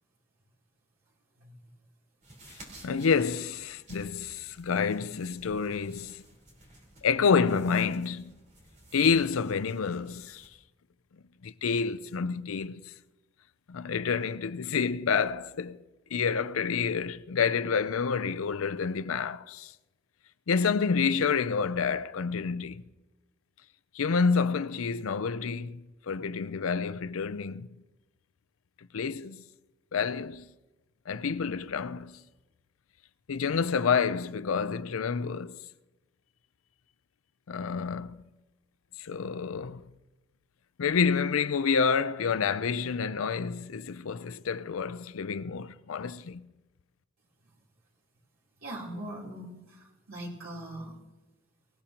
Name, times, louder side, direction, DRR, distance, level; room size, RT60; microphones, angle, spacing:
sound 1, 2.2-10.5, right 1 dB, 35° right, 4.0 m, -54 dB
voice 1, 2.8-6.2 7.0-8.3 8.9-10.5 11.4-12.9 13.7-15.8 16.1-19.7 20.5-22.8 23.9-27.7 28.8-29.4 29.9-30.5 31.1-32.2 33.3-35.7 37.5-38.2 39.0-39.8 40.8-46.5, left 5 dB, 85° left, 0.5 m, -28 dB
voice 2, 48.6-50.9, right 1 dB, 85° right, 3.5 m, -41 dB
23.5 x 15.5 x 2.9 m
head